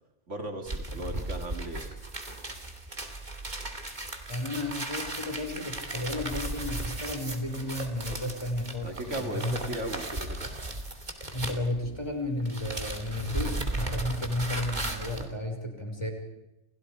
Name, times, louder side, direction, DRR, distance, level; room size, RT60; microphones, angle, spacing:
voice 1, 0.3-1.9 8.8-10.5, right 1 dB, 85° right, 4 dB, 3.2 m, -37 dB
sound 1, 0.6-12.1 12.4-15.3, right 2 dB, 40° right, 2.9 m, -36 dB
voice 2, 4.3-9.6 11.3-16.1, left 1 dB, 25° left, 3 dB, 5.7 m, -33 dB
29.5 x 29.5 x 5.0 m, 0.90 s
omnidirectional pair, 1.2 m